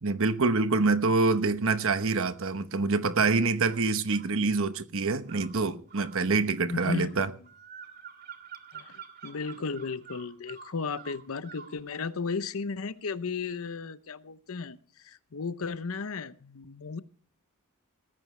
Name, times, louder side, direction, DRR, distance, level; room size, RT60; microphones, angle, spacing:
voice 1, 0.0-7.3, right 3 dB, 65° right, 1.0 m, -26 dB
sound 1, 3.6-4.3 5.3-11.8, right 7 dB, 45° right, 2.4 m, -48 dB
voice 2, 6.7-7.3 8.7-17.0, left 4 dB, 65° left, 0.7 m, -35 dB
18.5 x 14.0 x 3.3 m
head